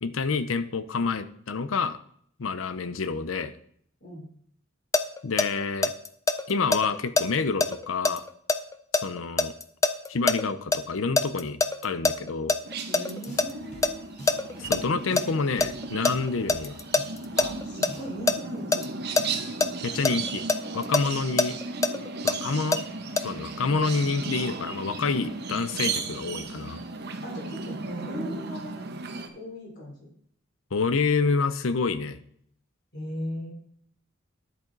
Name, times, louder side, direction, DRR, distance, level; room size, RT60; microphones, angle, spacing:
voice 1, 0.0-2.0 2.4-3.5 5.2-5.9 6.5-8.2 9.0-9.5 10.1-12.5 14.6-16.8 19.8-20.4 20.7-21.6 22.2-22.8 23.2-26.8 30.7-32.2, left 4 dB, 70° left, 13 dB, 0.6 m, -28 dB
sound 1, 4.9-10.8 11.2-13.5 13.8-13.9 14.3-14.8 15.2-18.4 18.7-18.9 19.2-19.3 19.6-19.7 20.0-22.8 23.2-23.3, left 3 dB, 15° left, 0.4 m, -23 dB
sound 2, 12.7-29.3, right 4 dB, 55° right, 0.9 m, -36 dB
voice 2, 12.9-14.1 17.4-18.9 27.2-28.8 29.3-30.1 32.9-33.5, equal, 55° left, -2 dB, 3.5 m, -38 dB
sound 3, 13.1-18.3, equal, 40° left, 3.9 m, -47 dB
10.0 x 7.6 x 3.9 m, 0.65 s
head